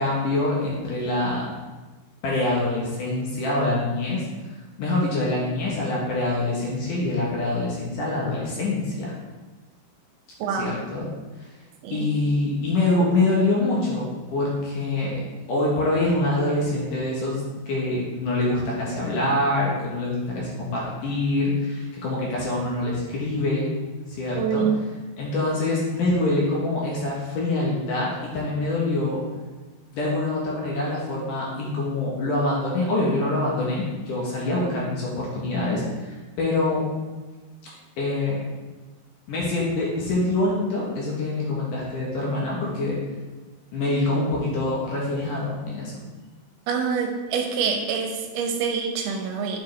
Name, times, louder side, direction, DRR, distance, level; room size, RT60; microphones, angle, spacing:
voice 1, 0.0-1.5 2.2-4.2 4.8-9.1 10.5-11.1 11.4-11.5 11.9-15.2 15.5-23.7 24.1-24.6 25.2-29.2 29.9-36.9 38.0-38.4 39.3-43.0 43.7-46.0, left 2 dB, 70° left, -5 dB, 2.2 m, -25 dB
voice 2, 10.4-10.8 11.8-12.1 24.3-24.8 46.7-49.6, right 6 dB, 85° right, 3 dB, 2.6 m, -26 dB
8.9 x 4.7 x 3.2 m, 1.3 s
omnidirectional pair, 4.7 m